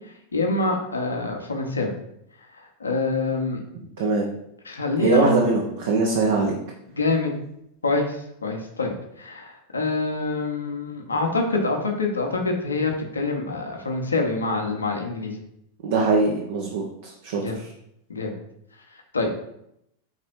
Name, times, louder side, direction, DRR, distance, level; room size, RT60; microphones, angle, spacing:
voice 1, 0.3-1.9 2.8-3.6 4.0-4.1 4.6-5.4 6.9-7.3 7.8-8.9 9.2-15.4 17.3-17.6 18.1-18.4 19.1-19.3, left 3 dB, 75° left, 2 dB, 1.1 m, -26 dB
voice 2, 4.0-4.3 5.0-6.5 15.8-17.7, right 3 dB, 55° right, 0 dB, 0.9 m, -22 dB
5.2 x 4.1 x 4.6 m, 0.78 s
figure-of-eight pair, 90°, 0 cm